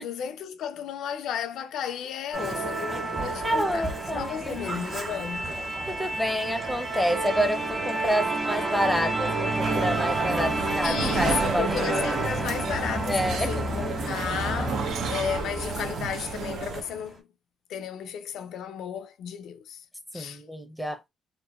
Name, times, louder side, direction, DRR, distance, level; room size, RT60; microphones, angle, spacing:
voice 1, 0.0-3.9 4.1-5.5 10.8-17.2 17.7-19.8 20.1-20.4, left 8 dB, 80° left, 0.3 m, -34 dB
Musical instrument, 2.3-17.0, right 2 dB, 30° right, 1.4 m, -30 dB
voice 2, 3.4-4.6 5.9-10.5 10.8-11.9 13.1-13.6 20.1-21.0, equal, ahead, 0.6 m, -28 dB
sound 1, 9.6-16.8, right 5 dB, 75° right, 0.6 m, -33 dB
2.9 x 2.5 x 2.3 m
cardioid pair, 90°, 0 cm